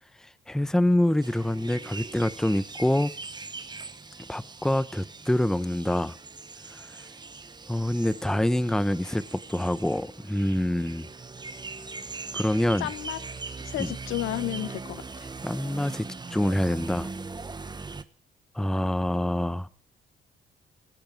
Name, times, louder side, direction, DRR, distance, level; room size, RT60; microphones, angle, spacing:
voice 1, 0.5-3.1 4.3-6.1 7.7-11.1 12.3-12.9 13.8-13.9 15.4-16.1 16.3-17.1 18.5-19.7, left 1 dB, 5° left, 0.7 m, -26 dB
sound 1, 1.2-18.0, right 3 dB, 20° right, 1.0 m, -40 dB
voice 2, 12.8-13.2 13.6-15.3, left 14 dB, 85° left, 0.9 m, -32 dB
21.0 x 8.8 x 5.9 m
cardioid pair, 90°, 20 cm